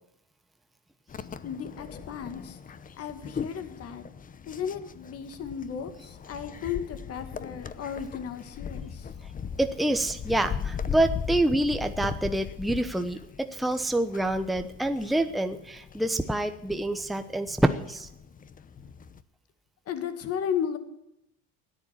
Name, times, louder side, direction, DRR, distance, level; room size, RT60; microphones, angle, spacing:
sound 1, 1.1-19.2, left 7 dB, 25° left, 0.8 m, -39 dB
voice 1, 1.4-2.6 3.0-4.0 4.5-9.1 19.9-20.8, left 8 dB, 45° left, 9 dB, 2.1 m, -34 dB
voice 2, 9.6-18.1, right 1 dB, ahead, 7 dB, 0.9 m, -27 dB
13.5 x 10.0 x 9.9 m, 0.81 s
cardioid pair, 120°, 33 cm